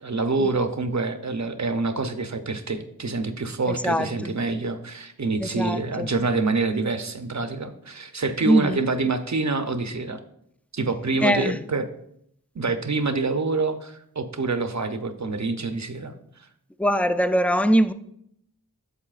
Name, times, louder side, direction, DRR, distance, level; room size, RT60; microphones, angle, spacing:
voice 1, 0.0-10.2 10.7-11.8 12.5-16.1, right 3 dB, 50° right, 0.7 m, -26 dB
voice 2, 3.7-4.4 5.4-6.1 8.5-8.8 11.2-11.6 16.8-17.9, equal, 5° left, 0.3 m, -22 dB
8.8 x 6.9 x 2.4 m
wide cardioid pair, 50°, 37 cm